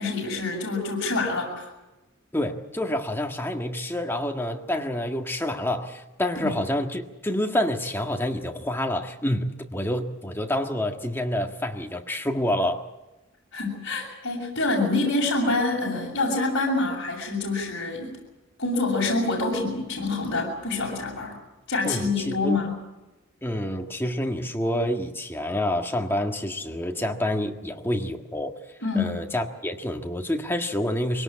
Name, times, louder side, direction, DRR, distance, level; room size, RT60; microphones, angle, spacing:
voice 1, 0.0-1.7 6.4-6.5 13.5-18.2 18.6-21.3 21.7-22.8 28.8-29.2, left 3 dB, 55° left, -2 dB, 7.0 m, -26 dB
voice 2, 2.3-12.8 21.9-22.6 23.4-28.6 28.9-31.2, left 1 dB, 10° left, 3 dB, 1.7 m, -28 dB
24.0 x 18.0 x 8.6 m, 1.0 s
head